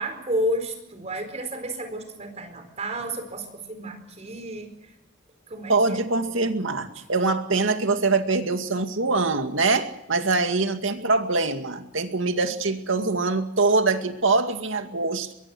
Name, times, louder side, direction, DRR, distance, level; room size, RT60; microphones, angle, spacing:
voice 1, 0.0-4.9 5.5-6.1, equal, 35° right, 7 dB, 4.5 m, -31 dB
voice 2, 5.7-15.3, right 3 dB, 80° right, 7 dB, 2.2 m, -23 dB
23.0 x 22.5 x 6.2 m, 0.84 s
head